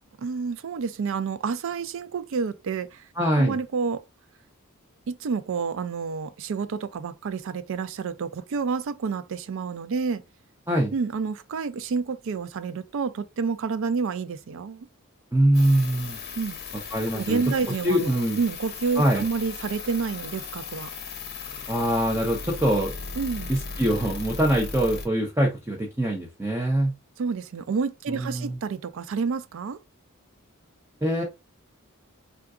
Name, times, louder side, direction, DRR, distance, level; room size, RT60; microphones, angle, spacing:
voice 1, 0.2-3.0 3.4-4.0 5.1-10.2 10.9-14.9 16.4-16.6 17.1-20.9 23.2-23.5 27.2-29.8, right 5 dB, 65° right, 0.4 m, -29 dB
voice 2, 3.2-3.6 10.7-10.9 15.3-16.2 16.9-17.4 17.8-18.4 19.0-19.2 21.7-22.9 23.5-26.9 28.1-28.6 31.0-31.2, right 1 dB, 10° right, 0.6 m, -23 dB
sound 1, 15.5-25.1, left 4 dB, 50° left, 0.7 m, -37 dB
3.7 x 2.3 x 2.4 m
head